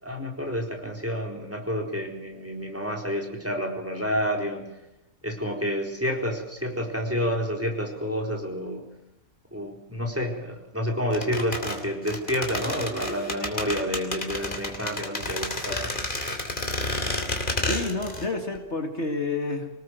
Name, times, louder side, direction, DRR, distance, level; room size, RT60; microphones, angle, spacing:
voice 1, 0.0-4.7 5.2-8.9 9.5-15.9, equal, 10° right, 1 dB, 4.2 m, -29 dB
sound 1, 11.1-18.3 18.5-18.6, left 2 dB, 35° left, 3.4 m, -30 dB
voice 2, 17.7-19.7, left 3 dB, 50° left, 3 dB, 2.4 m, -29 dB
25.0 x 19.5 x 7.8 m, 0.87 s
omnidirectional pair, 1.5 m